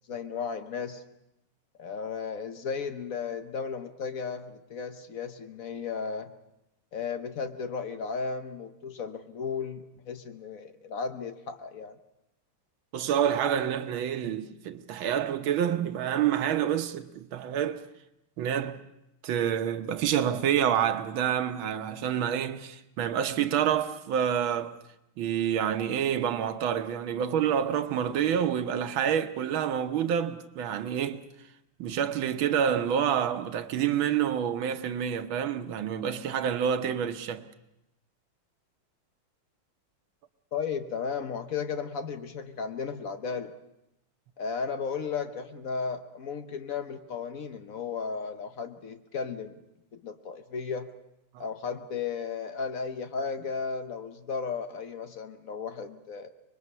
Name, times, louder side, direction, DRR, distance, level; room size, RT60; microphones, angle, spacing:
voice 1, 0.1-1.0 1.8-6.3 6.9-12.0 40.5-43.5 44.4-49.6 49.9-50.9 51.4-56.3, left 5 dB, 50° left, 1.1 m, -35 dB
voice 2, 12.9-17.8 18.4-18.8 19.2-24.8 25.2-31.2 31.8-37.4 51.3-51.4, right 9 dB, 70° right, 1.7 m, -28 dB
25.0 x 21.5 x 5.5 m
omnidirectional pair, 2.4 m